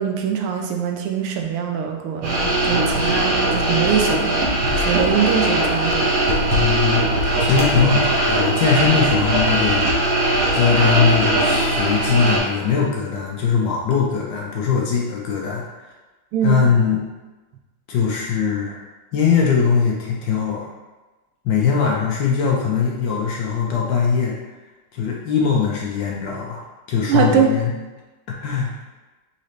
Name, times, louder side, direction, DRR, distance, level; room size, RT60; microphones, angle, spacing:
voice 1, 0.0-6.1 16.3-16.7 27.1-27.5, right 7 dB, 80° right, 3 dB, 1.5 m, -22 dB
sound 1, 2.2-12.4, right 1 dB, 55° right, 1.6 m, -20 dB
voice 2, 6.5-7.1 7.4-10.2 10.5-15.9 16.4-17.0 17.9-18.9 19.1-20.7 21.4-24.3 24.9-26.6 26.9-27.7 28.4-28.7, left 6 dB, 70° left, -2 dB, 1.3 m, -21 dB
4.2 x 3.9 x 3.1 m, 1.2 s
omnidirectional pair, 2.4 m